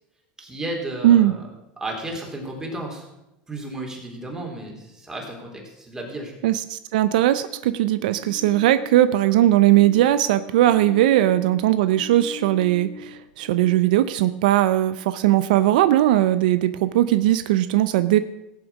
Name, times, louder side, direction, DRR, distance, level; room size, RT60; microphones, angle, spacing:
voice 1, 0.4-1.4 1.8-3.1 3.5-6.3, right 1 dB, 15° right, 0 dB, 3.9 m, -33 dB
voice 2, 1.0-1.3 6.4-18.2, right 14 dB, 80° right, 13 dB, 0.5 m, -19 dB
sound 1, 7.9-13.8, left 7 dB, 75° left, 1.7 m, -41 dB
16.5 x 7.4 x 5.9 m, 0.91 s
supercardioid pair, 110°, 4 cm